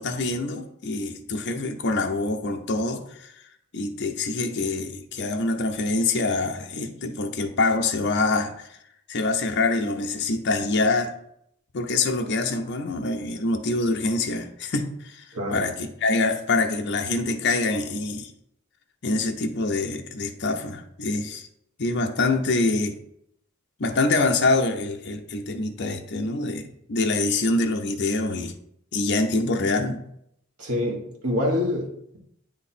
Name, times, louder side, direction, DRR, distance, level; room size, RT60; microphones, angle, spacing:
voice 1, 0.0-3.3 3.7-8.7 9.1-11.1 11.7-15.3 15.5-15.8 16.0-18.3 19.0-21.5 21.8-23.0 23.8-28.5 28.9-30.0, left 3 dB, 50° left, 4 dB, 0.7 m, -25 dB
voice 2, 30.6-32.2, left 1 dB, 85° right, 0 dB, 1.4 m, -26 dB
9.1 x 3.1 x 4.2 m, 0.74 s
head